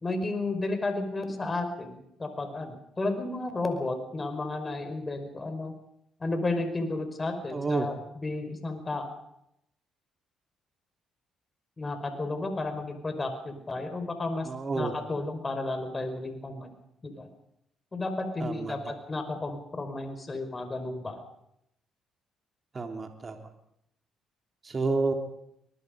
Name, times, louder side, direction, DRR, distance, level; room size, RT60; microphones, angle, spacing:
voice 1, 0.0-5.7 6.2-9.1 11.8-14.5 14.7-16.7 17.0-17.3 17.9-21.2, left 2 dB, 30° left, 7 dB, 5.3 m, -32 dB
voice 2, 7.5-7.9 14.4-14.9 18.4-18.9 22.7-23.4 24.6-25.1, right 3 dB, 35° right, 4 dB, 3.6 m, -30 dB
24.5 x 21.0 x 5.3 m, 0.76 s
supercardioid pair, 70°, 0 cm